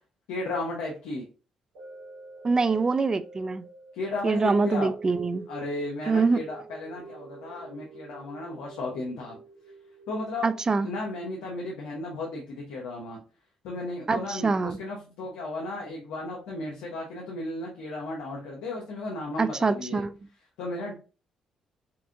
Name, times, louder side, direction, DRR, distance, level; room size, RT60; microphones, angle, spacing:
voice 1, 0.3-1.2 3.9-4.9 5.5-9.3 10.1-10.5 10.8-13.2 13.6-20.0 20.6-20.9, left 2 dB, 90° left, 1.0 m, -34 dB
sound 1, 1.7-12.1 12.6-12.7, right 3 dB, 90° right, 1.8 m, -47 dB
voice 2, 2.4-3.7 4.2-5.5 6.1-6.4 10.4-10.9 14.1-14.8 19.4-20.1, right 4 dB, 30° right, 0.4 m, -24 dB
5.7 x 2.5 x 2.6 m
supercardioid pair, 65°, 2 cm